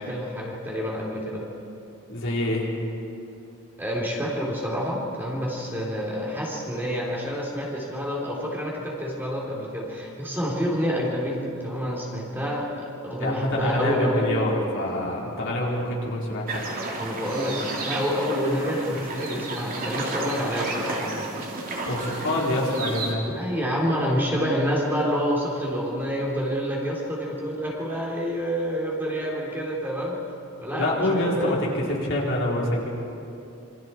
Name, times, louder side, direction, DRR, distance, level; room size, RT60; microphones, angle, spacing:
voice 1, 0.0-1.4 3.8-14.2 17.0-21.3 23.3-30.2 30.6-31.5, equal, 10° right, -3 dB, 3.7 m, -28 dB
voice 2, 2.1-2.7 13.2-16.6 21.9-23.3 30.8-32.9, left 1 dB, 60° left, -4 dB, 4.3 m, -26 dB
sound 1, 16.5-23.1, right 2 dB, 40° right, 3.0 m, -32 dB
27.5 x 25.5 x 4.6 m, 2.7 s
head